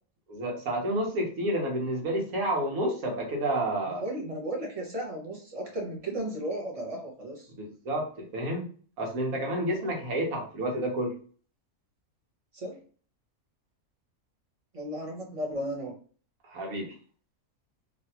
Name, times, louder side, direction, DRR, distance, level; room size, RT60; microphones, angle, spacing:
voice 1, 0.3-4.0 7.5-8.7 9.0-11.2 16.5-16.9, right 1 dB, 75° right, -1 dB, 1.4 m, -30 dB
voice 2, 3.9-7.5 9.6-9.9 12.5-12.8 14.7-15.9, right 1 dB, 30° right, -1 dB, 0.8 m, -35 dB
3.1 x 2.6 x 2.8 m, 0.42 s
omnidirectional pair, 1.5 m